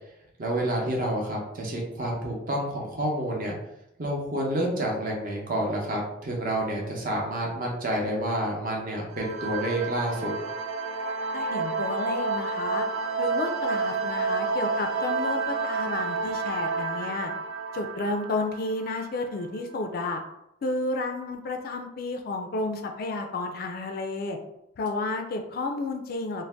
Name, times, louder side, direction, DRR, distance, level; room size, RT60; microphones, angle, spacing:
voice 1, 0.4-3.6 4.0-10.3, right 1 dB, 45° right, -1 dB, 0.7 m, -29 dB
sound 1, 9.1-19.5, right 4 dB, 85° right, 0.3 m, -30 dB
voice 2, 11.3-12.9 13.2-17.3 17.7-20.2 20.6-24.4 24.8-26.5, left 2 dB, 50° left, 5 dB, 0.3 m, -31 dB
2.6 x 2.1 x 3.3 m, 0.83 s
head